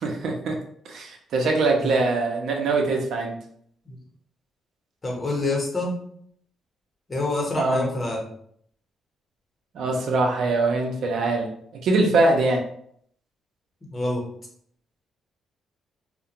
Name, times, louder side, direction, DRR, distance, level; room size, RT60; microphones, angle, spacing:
voice 1, 0.0-0.6 0.9-3.3 7.6-7.9 9.7-11.5 11.8-12.6, right 3 dB, 70° right, 1 dB, 0.5 m, -22 dB
voice 2, 5.0-5.9 7.1-8.2 13.9-14.2, left 2 dB, 30° left, -1 dB, 0.9 m, -26 dB
2.4 x 2.1 x 2.8 m, 0.65 s
cardioid pair, 90°, 0 cm